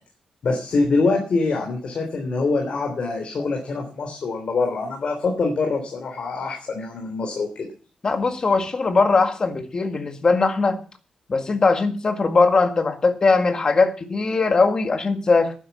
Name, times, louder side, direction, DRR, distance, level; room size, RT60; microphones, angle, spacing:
voice 1, 0.4-7.7, left 3 dB, 50° left, 3 dB, 3.4 m, -24 dB
voice 2, 8.0-10.8 11.3-15.5, left 3 dB, 35° left, 8 dB, 1.9 m, -20 dB
12.0 x 10.0 x 6.9 m, 0.39 s
wide cardioid pair, 145°, 2 cm